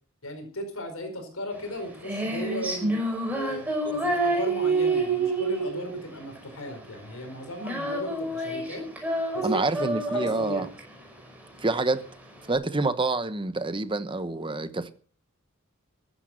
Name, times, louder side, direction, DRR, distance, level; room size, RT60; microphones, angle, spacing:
voice 1, 0.2-2.9 3.3-8.8 9.3-9.6 10.1-10.7, left 1 dB, 80° left, 4.8 m, -36 dB
Female singing, 1.5-12.5, right 2 dB, 5° right, 5.5 m, -28 dB
voice 2, 9.4-10.7 11.6-12.0 12.5-14.9, right 3 dB, 25° right, 1.0 m, -27 dB
15.0 x 10.5 x 6.4 m
head